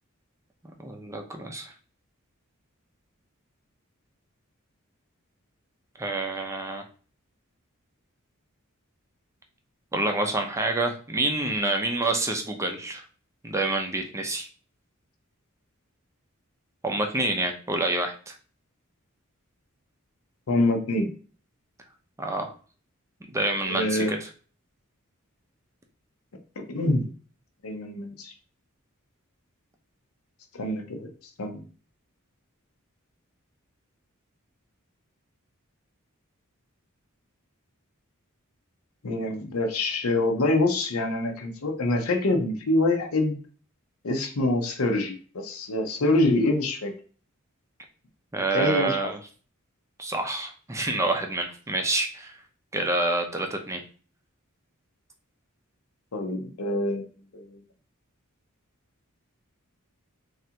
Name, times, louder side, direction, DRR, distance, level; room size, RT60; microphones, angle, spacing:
voice 1, 0.8-1.7 6.0-6.8 9.9-13.0 13.4-14.5 16.8-18.3 22.2-22.5 23.3-24.3 48.3-49.2 50.0-52.3 52.7-53.8, right 2 dB, 15° right, 4 dB, 0.5 m, -27 dB
voice 2, 20.5-21.1 23.7-24.2 26.6-27.1 27.6-28.3 30.5-31.1 31.4-31.6 39.0-43.3 44.0-46.9 48.5-49.1 56.1-57.6, left 2 dB, 75° left, 5 dB, 0.6 m, -25 dB
3.2 x 2.5 x 2.8 m, 0.39 s
head